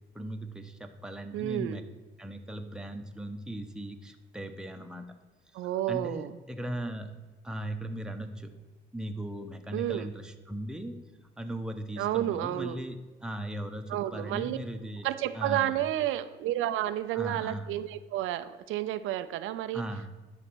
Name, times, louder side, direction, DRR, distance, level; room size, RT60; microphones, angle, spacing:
voice 1, 0.1-1.8 2.2-5.0 5.5-5.6 5.9-7.1 7.4-8.5 8.9-11.0 11.4-15.1 15.3-15.8 17.1-17.7 19.7-20.1, right 1 dB, 5° right, 5 dB, 0.8 m, -38 dB
voice 2, 1.3-1.8 5.5-6.4 9.7-10.1 12.0-12.8 13.9-14.6 15.0-19.8, right 13 dB, 90° right, 12 dB, 0.4 m, -31 dB
11.0 x 4.1 x 6.1 m, 1.3 s
cardioid pair, 90°, 20 cm